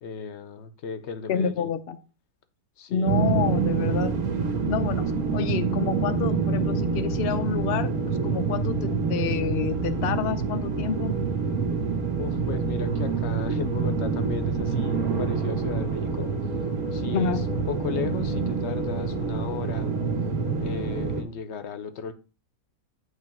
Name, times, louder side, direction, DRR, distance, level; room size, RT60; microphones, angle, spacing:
voice 1, 0.0-1.7 2.8-3.2 5.3-5.4 12.2-16.4 16.9-20.0 20.6-22.1, left 6 dB, 60° left, 0.8 m, -35 dB
voice 2, 1.3-2.0 2.9-4.2 4.6-5.1 5.3-7.9 8.2-11.2 17.1-17.4, left 8 dB, 80° left, 0.5 m, -28 dB
sound 1, 3.1-21.2, right 5 dB, 65° right, 1.4 m, -26 dB
9.2 x 3.2 x 5.9 m
omnidirectional pair, 1.7 m